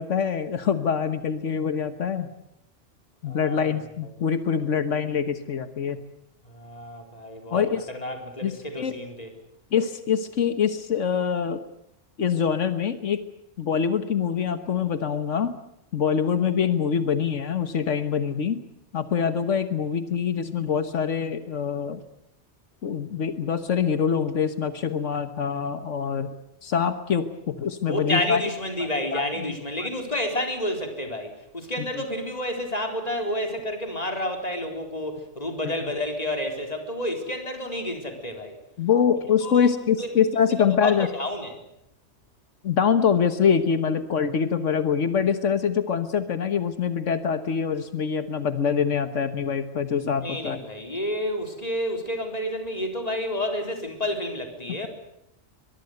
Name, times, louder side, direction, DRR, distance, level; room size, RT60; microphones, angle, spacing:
voice 1, 0.0-2.3 3.2-6.0 7.5-7.9 8.4-9.0 9.7-11.6 12.2-13.2 13.6-15.5 15.9-18.6 18.9-22.0 22.8-26.3 26.6-28.4 28.8-29.9 31.8-32.0 35.6-35.7 38.8-41.1 42.6-50.6, left 7 dB, 90° left, 11 dB, 1.6 m, -24 dB
voice 2, 3.2-3.8 6.4-9.3 27.9-38.6 39.4-39.7 40.0-40.1 40.6-41.5 50.2-54.9, left 1 dB, 30° left, 4 dB, 4.1 m, -30 dB
23.0 x 22.5 x 8.0 m, 0.79 s
omnidirectional pair, 1.2 m